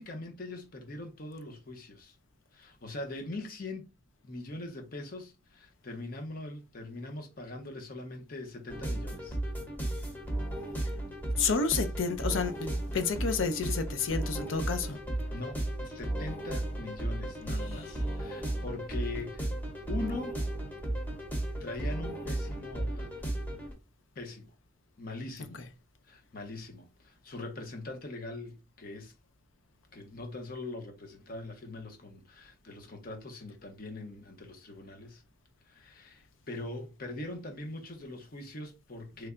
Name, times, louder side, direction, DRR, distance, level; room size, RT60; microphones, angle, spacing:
voice 1, 0.0-2.2 2.5-3.9 4.2-9.4 15.3-19.5 19.9-20.4 21.6-23.2 24.1-24.5 25.0-25.6 26.1-29.1 29.9-35.2 35.7-39.3, left 2 dB, 45° left, 0.8 m, -42 dB
sound 1, 8.7-23.7, right 1 dB, 10° left, 0.9 m, -34 dB
voice 2, 11.4-15.0 17.6-17.9 25.5-25.7, left 5 dB, 85° left, 0.6 m, -31 dB
3.2 x 2.2 x 3.7 m
head